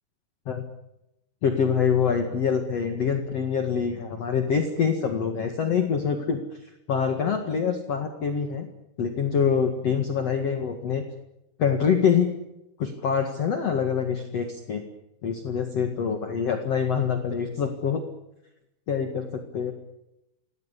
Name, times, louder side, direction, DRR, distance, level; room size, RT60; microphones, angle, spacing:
voice 1, 1.4-6.4 6.9-8.7 9.0-11.0 11.6-12.3 12.8-14.8 15.2-18.0 18.9-19.7, left 7 dB, 45° left, 6 dB, 2.6 m, -25 dB
27.5 x 20.0 x 8.3 m, 0.88 s
omnidirectional pair, 4.6 m